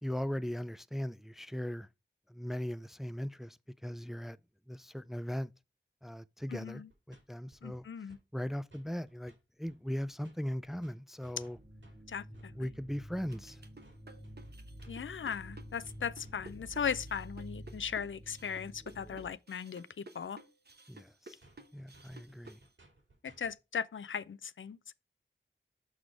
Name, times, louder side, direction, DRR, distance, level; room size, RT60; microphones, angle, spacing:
voice 1, 0.0-1.9 2.3-4.4 4.7-5.5 6.0-6.8 7.1-7.8 8.3-9.3 9.6-11.6 12.5-13.6 20.9-21.4 21.7-22.6, equal, ahead, 0.3 m, -38 dB
voice 2, 6.5-6.9 7.6-8.2 12.1-12.5 14.9-20.4 23.2-24.9, left 7 dB, 85° left, 0.4 m, -38 dB
sound 1, 6.9-7.2 7.5-8.2 8.5-9.4 9.7-16.6 19.9-20.0 20.3-20.4 20.7-20.8 21.1-21.2 21.4-23.6, right 2 dB, 75° right, 2.2 m, -62 dB
sound 2, 11.5-19.3, equal, 35° right, 1.3 m, -50 dB
sound 3, 13.2-22.7, right 2 dB, 55° right, 1.0 m, -54 dB
6.5 x 3.9 x 4.7 m
wide cardioid pair, 50°, 20 cm